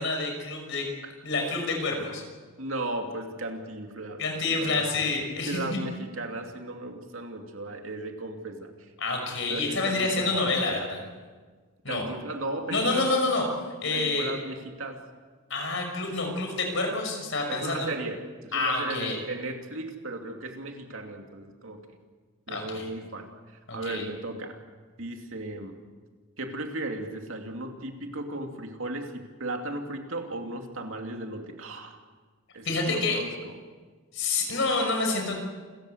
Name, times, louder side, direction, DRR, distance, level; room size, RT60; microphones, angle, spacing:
voice 1, 0.0-0.9 1.2-2.2 4.2-5.8 9.0-11.1 11.8-12.0 12.7-13.4 13.8-14.3 15.5-17.9 18.5-19.2 22.5-22.9 23.7-24.0 32.6-33.2 34.1-35.4, left 3 dB, 60° left, 3 dB, 5.8 m, -28 dB
voice 2, 2.6-4.2 4.6-4.8 5.5-8.9 9.5-10.5 11.9-13.1 13.9-15.0 17.5-21.8 22.5-24.6 25.0-25.8 26.4-32.0 32.5-33.6, right 2 dB, 70° right, 3 dB, 2.7 m, -36 dB
28.5 x 15.0 x 8.1 m, 1.4 s
head